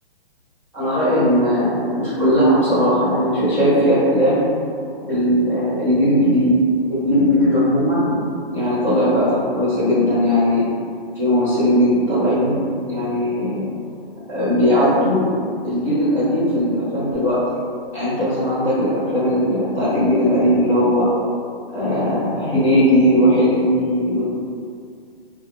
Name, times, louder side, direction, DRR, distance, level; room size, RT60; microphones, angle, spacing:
voice 1, 0.7-4.4 5.1-6.6 6.9-8.2 8.5-10.7 11.1-13.7 14.3-17.4 17.9-21.1 21.7-24.2, equal, 10° right, -13 dB, 0.7 m, -18 dB
2.3 x 2.1 x 3.5 m, 2.3 s
hypercardioid pair, 155°, 31 cm